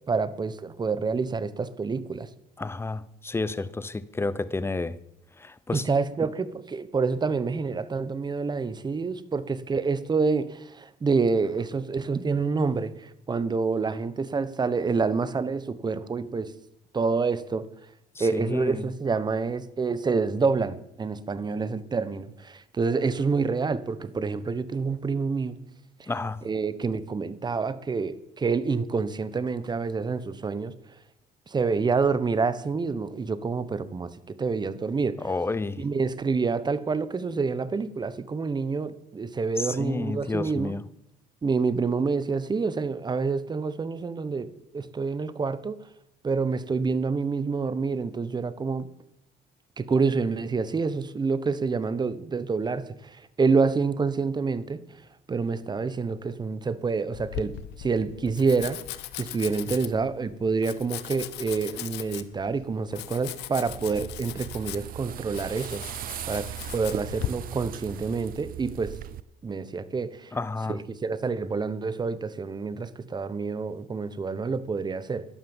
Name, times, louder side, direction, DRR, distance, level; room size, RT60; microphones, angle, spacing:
voice 1, 0.1-2.3 5.7-16.5 16.9-17.7 18.2-25.6 26.0-26.1 26.4-30.7 31.5-35.2 35.8-40.7 41.4-45.8 46.2-48.9 49.8-54.8 55.3-58.8 59.2-65.8 66.2-69.0 69.4-70.3 70.7-75.2, right 4 dB, 25° right, 1.0 m, -27 dB
voice 2, 2.6-5.0 5.4-5.9 18.1-18.9 26.1-26.4 35.2-35.8 39.6-40.8 70.3-70.8, left 3 dB, 15° left, 0.7 m, -30 dB
Domestic sounds home sounds, 57.1-67.3, left 15 dB, 85° left, 0.9 m, -39 dB
sound 1, 63.7-69.2, right 12 dB, 60° right, 0.7 m, -38 dB
12.0 x 11.5 x 7.2 m
cardioid pair, 110°, 17 cm